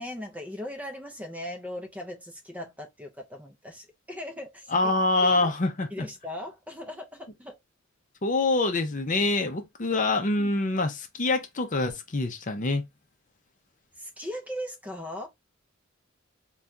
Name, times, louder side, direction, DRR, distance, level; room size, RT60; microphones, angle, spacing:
voice 1, 0.0-4.9 5.2-5.5 5.9-7.6 10.4-10.5 14.0-15.3, left 1 dB, 10° right, 0.6 m, -38 dB
voice 2, 4.7-6.1 8.2-12.8, left 2 dB, 40° left, 0.6 m, -25 dB
2.7 x 2.3 x 3.4 m
head